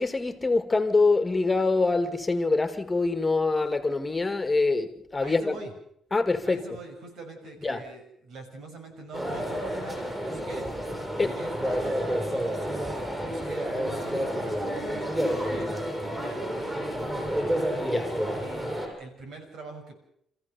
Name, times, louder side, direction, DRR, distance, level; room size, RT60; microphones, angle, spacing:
voice 1, 0.0-5.6 6.1-6.6 7.6-7.8 11.2-11.3 17.9-18.0, left 3 dB, 20° left, 2.0 m, -24 dB
voice 2, 5.2-5.7 6.4-18.7 19.0-20.0, right 3 dB, 70° right, 6.4 m, -44 dB
sound 1, 9.1-18.9, equal, 15° right, 7.9 m, -30 dB
27.5 x 15.0 x 6.9 m
cardioid pair, 90°, 0 cm